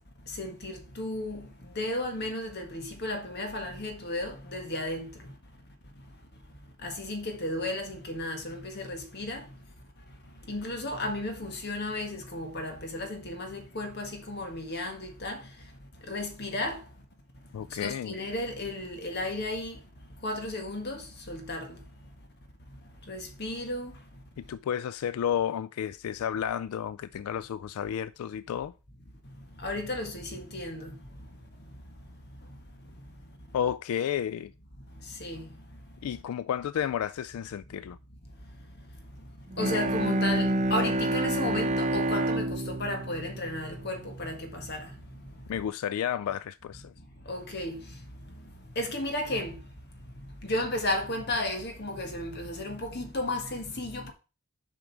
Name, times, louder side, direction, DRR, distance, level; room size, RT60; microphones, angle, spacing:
voice 1, 0.3-1.5 1.7-5.3 6.8-9.4 10.5-15.4 16.1-16.8 17.8-19.8 20.2-21.8 23.1-23.9 29.6-30.9 35.2-35.5 39.6-44.9 47.3-47.8 48.7-49.6 50.4-54.1, left 1 dB, 50° left, 1.5 m, -34 dB
voice 2, 17.5-18.1 24.4-28.7 33.5-34.5 36.0-38.0 45.5-46.9, left 9 dB, 90° left, 0.3 m, -31 dB
Bowed string instrument, 39.5-44.4, right 1 dB, 35° right, 0.7 m, -29 dB
7.1 x 5.1 x 4.6 m
head